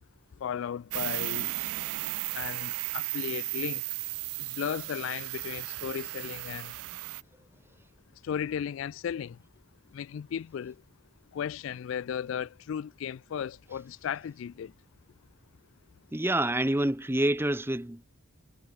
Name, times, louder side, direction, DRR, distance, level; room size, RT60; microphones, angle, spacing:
voice 1, 0.4-1.6 2.3-3.8 4.4-6.7 8.2-9.4 9.9-10.8 11.3-14.7, left 8 dB, 65° left, 0.3 m, -35 dB
sound 1, 0.9-7.2, right 21 dB, 85° right, 0.3 m, -35 dB
voice 2, 16.1-18.1, right 1 dB, 10° right, 0.9 m, -27 dB
head